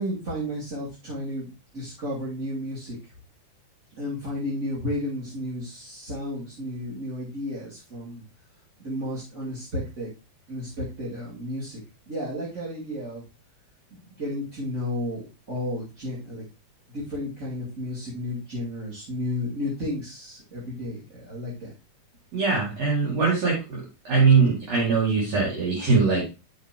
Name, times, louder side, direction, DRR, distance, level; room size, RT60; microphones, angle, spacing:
voice 1, 0.0-3.0 4.0-8.2 8.8-10.1 10.5-11.8 12.1-13.2 13.9-16.4 16.9-21.7, left 1 dB, 25° right, -9 dB, 2.8 m, -32 dB
voice 2, 22.3-23.8 24.1-26.3, right 4 dB, 60° right, -5 dB, 3.7 m, -21 dB
9.5 x 7.2 x 3.1 m, 0.28 s
omnidirectional pair, 3.3 m